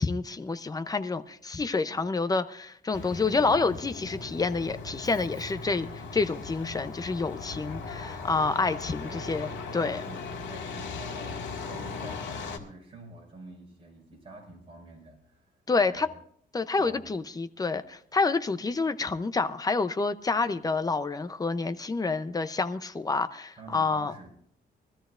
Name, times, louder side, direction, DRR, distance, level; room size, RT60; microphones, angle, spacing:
voice 1, 0.0-5.9 6.1-10.0 15.7-16.1 16.5-24.1, left 4 dB, 20° left, 0.6 m, -28 dB
voice 2, 1.8-2.2 3.2-3.7 9.0-9.2 9.8-15.6 15.8-16.2 16.8-17.1 20.6-20.7 23.6-24.3, right 2 dB, 30° right, 5.7 m, -48 dB
Truck, 2.9-12.6, left 4 dB, 90° left, 1.8 m, -38 dB
22.0 x 13.5 x 2.5 m
cardioid pair, 135°, 19 cm